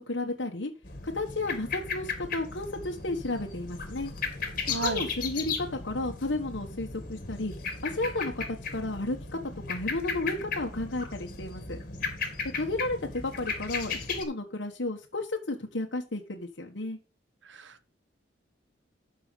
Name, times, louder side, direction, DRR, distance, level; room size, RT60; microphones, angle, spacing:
voice 1, 0.1-0.7 1.0-4.1 4.7-7.5 7.8-9.2 9.7-11.8 12.5-17.0, left 2 dB, 75° left, 1.4 m, -33 dB
sound 1, 0.8-14.2, left 5 dB, 50° left, 2.4 m, -36 dB
voice 2, 4.7-5.1 17.4-17.9, right 3 dB, 90° right, 1.1 m, -35 dB
12.5 x 5.5 x 5.2 m
head